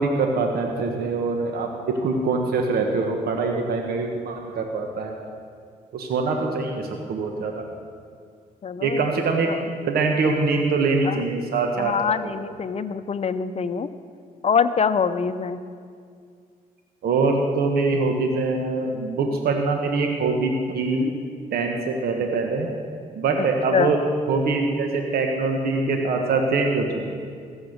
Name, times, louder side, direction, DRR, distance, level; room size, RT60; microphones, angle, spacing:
voice 1, 0.0-5.1 5.9-7.6 8.8-9.5 9.9-12.1 17.0-21.1 21.5-22.7 23.1-24.0 24.3-27.1, right 3 dB, 70° right, 2 dB, 1.2 m, -23 dB
voice 2, 8.6-9.1 9.5-9.6 11.0-11.2 11.8-13.9 14.4-15.6 23.4-24.0, left 6 dB, 40° left, 12 dB, 0.7 m, -24 dB
15.0 x 7.3 x 6.6 m, 2.2 s
cardioid pair, 70°, 16 cm